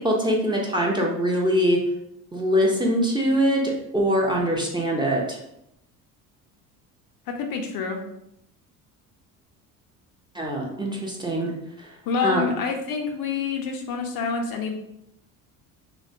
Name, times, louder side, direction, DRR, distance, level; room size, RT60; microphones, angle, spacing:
voice 1, 0.0-1.8 2.3-5.4 10.3-11.5 11.8-11.9 12.2-12.5, equal, 10° right, -2 dB, 0.6 m, -23 dB
voice 2, 7.3-8.0 12.1-14.7, left 5 dB, 55° left, 4 dB, 0.5 m, -27 dB
2.7 x 2.1 x 2.6 m, 0.79 s
hypercardioid pair, 75°, 42 cm